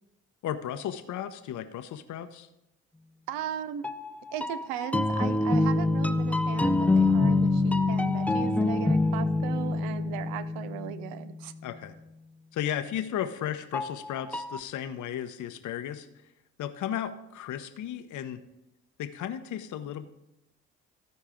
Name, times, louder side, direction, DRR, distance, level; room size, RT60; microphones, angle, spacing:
voice 1, 0.4-2.5 11.6-11.9 12.5-16.1 16.6-18.4 19.0-20.1, left 10 dB, 60° left, 9 dB, 0.7 m, -34 dB
voice 2, 3.3-3.9 4.3-11.5, right 11 dB, 80° right, 14 dB, 0.6 m, -37 dB
sound 1, 3.8-11.5 13.7-14.6, left 2 dB, 5° left, 0.4 m, -26 dB
13.5 x 4.6 x 4.9 m, 0.87 s
hypercardioid pair, 50°, 34 cm